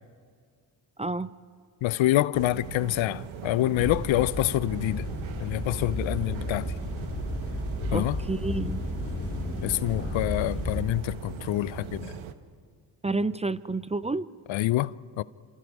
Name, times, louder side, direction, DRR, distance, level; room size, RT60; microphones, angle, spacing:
voice 1, 1.0-1.3 7.9-8.8 13.0-14.3, right 3 dB, 15° right, 0.5 m, -29 dB
voice 2, 1.8-5.1 5.4-6.7 7.9-8.2 9.6-12.1 14.5-15.2, left 16 dB, 70° left, 0.6 m, -26 dB
sound 1, 2.3-12.3, right 8 dB, 70° right, 1.3 m, -39 dB
sound 2, 3.8-10.8, left 1 dB, 30° left, 4.2 m, -33 dB
27.5 x 27.0 x 4.8 m
supercardioid pair, 55°, 48 cm